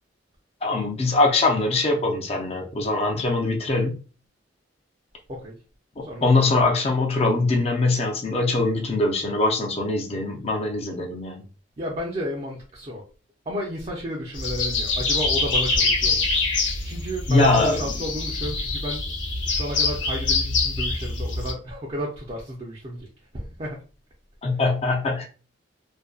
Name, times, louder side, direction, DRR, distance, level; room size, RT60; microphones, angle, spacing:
voice 1, 0.6-4.0 6.2-11.5 17.3-17.8 24.4-25.2, left 2 dB, 35° left, 0.5 m, -22 dB
voice 2, 6.0-6.4 11.8-13.0 13.5-16.3 16.8-19.1 19.5-23.1 23.3-23.8, equal, 35° right, 0.5 m, -32 dB
sound 1, 14.3-21.5, left 3 dB, 80° left, 0.7 m, -25 dB
2.5 x 2.1 x 2.3 m
head